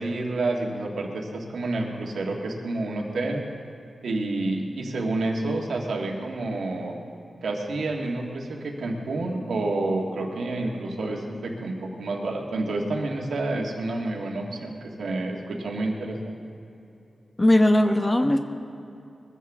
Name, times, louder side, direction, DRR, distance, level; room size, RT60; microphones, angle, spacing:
voice 1, 0.0-3.5 4.0-7.0 7.4-16.4, right 2 dB, 85° right, 0 dB, 1.8 m, -29 dB
voice 2, 17.4-18.4, left 1 dB, 20° left, 4 dB, 0.9 m, -18 dB
21.5 x 15.0 x 3.6 m, 2.9 s
cardioid pair, 70°, 0 cm